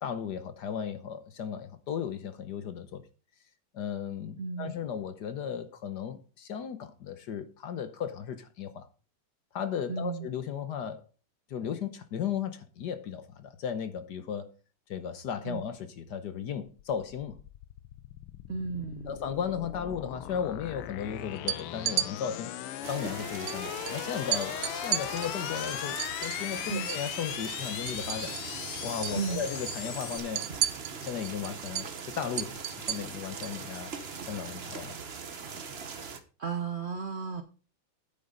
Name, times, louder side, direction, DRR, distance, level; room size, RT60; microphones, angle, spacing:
voice 1, 0.0-3.1 3.7-8.9 9.5-11.0 11.5-14.5 14.9-17.4 19.1-22.5 22.9-28.3 28.8-30.5 31.0-33.9 34.3-35.0, left 8 dB, 60° left, 1.3 m, -35 dB
voice 2, 4.4-4.7 9.9-10.3 15.4-15.6 18.5-19.2 26.7-26.9 29.2-29.4 36.4-37.4, right 5 dB, 85° right, 0.5 m, -34 dB
sound 1, 16.8-30.2, left 13 dB, 85° left, 1.6 m, -39 dB
sound 2, 21.4-22.1 23.5-23.6 23.9-24.0 24.3-27.1 27.4-28.6 28.8-29.2 29.5-33.6, right 12 dB, 70° right, 1.1 m, -33 dB
sound 3, 22.8-36.2, right 5 dB, 45° right, 0.8 m, -41 dB
9.6 x 9.2 x 3.8 m
omnidirectional pair, 2.4 m